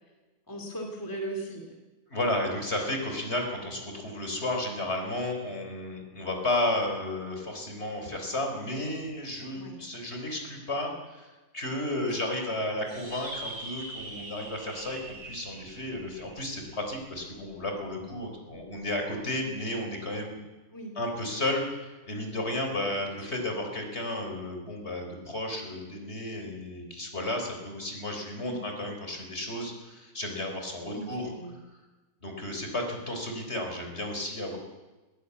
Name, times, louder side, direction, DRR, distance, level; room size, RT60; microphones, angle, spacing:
voice 1, 0.5-1.8 9.5-9.8 12.1-12.2 20.7-20.9 23.1-23.3 28.4-28.7 30.9-31.6, right 1 dB, 15° left, 1 dB, 2.3 m, -38 dB
voice 2, 2.1-11.3 11.5-20.4 21.0-31.3 32.2-34.6, left 1 dB, 45° left, 3 dB, 4.1 m, -33 dB
sound 1, 12.9-17.6, right 1 dB, 85° right, 4.6 m, -43 dB
20.0 x 15.5 x 8.3 m, 1.2 s
omnidirectional pair, 1.6 m